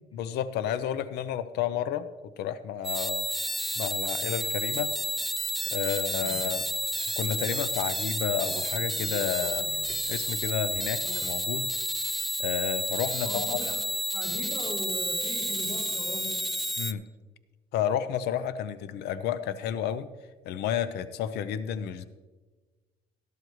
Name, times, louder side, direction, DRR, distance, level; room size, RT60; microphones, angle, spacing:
voice 1, 0.1-2.1 2.4-3.2 3.8-4.9 5.7-6.7 7.2-9.7 10.1-11.7 12.4-13.6 16.8-17.0 17.7-20.1 20.5-22.0, left 9 dB, 75° left, 13 dB, 0.5 m, -31 dB
sound 1, 2.8-16.9, equal, ahead, 0.4 m, -31 dB
sound 2, 8.4-11.5 11.9-12.0, right 6 dB, 60° right, 0.7 m, -47 dB
voice 2, 13.2-13.8 14.1-16.4, left 1 dB, 30° left, -4 dB, 2.9 m, -39 dB
12.5 x 12.5 x 3.1 m, 1.3 s
cardioid pair, 110°, 17 cm